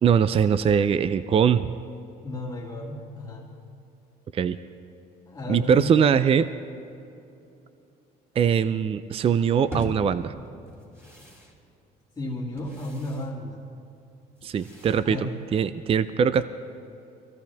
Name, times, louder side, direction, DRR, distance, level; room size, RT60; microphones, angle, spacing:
voice 1, 0.0-1.7 4.3-4.6 5.5-6.5 8.4-10.3 14.4-16.5, right 7 dB, 35° right, 13 dB, 0.5 m, -22 dB
voice 2, 2.2-3.5 5.3-5.9 12.2-13.7 15.0-15.3, left 1 dB, 20° left, -4 dB, 2.2 m, -34 dB
sound 1, 9.7-15.9, right 1 dB, 15° right, 3.1 m, -42 dB
23.5 x 16.5 x 3.5 m, 2.7 s
cardioid pair, 110°, 17 cm